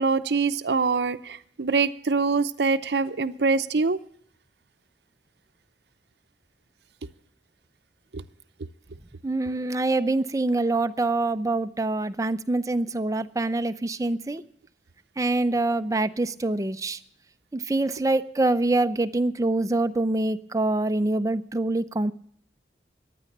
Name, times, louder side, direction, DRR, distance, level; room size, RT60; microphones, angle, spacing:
voice 1, 0.0-4.0 8.1-8.2, right 4 dB, 75° right, 10 dB, 0.7 m, -24 dB
voice 2, 9.2-14.4 15.2-17.0 17.5-22.1, right 2 dB, 20° right, 11 dB, 0.5 m, -25 dB
15.0 x 10.0 x 6.6 m, 0.65 s
head